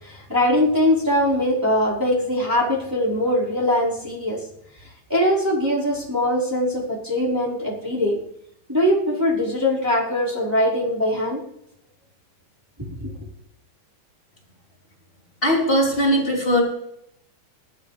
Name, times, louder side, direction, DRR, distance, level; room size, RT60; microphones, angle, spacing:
voice 1, 0.0-4.4 5.1-8.2 8.7-11.4 13.0-13.1, left 1 dB, 5° right, -7 dB, 4.7 m, -21 dB
voice 2, 15.4-16.6, equal, 15° left, -3 dB, 4.3 m, -19 dB
20.0 x 13.5 x 3.4 m, 0.74 s
omnidirectional pair, 4.1 m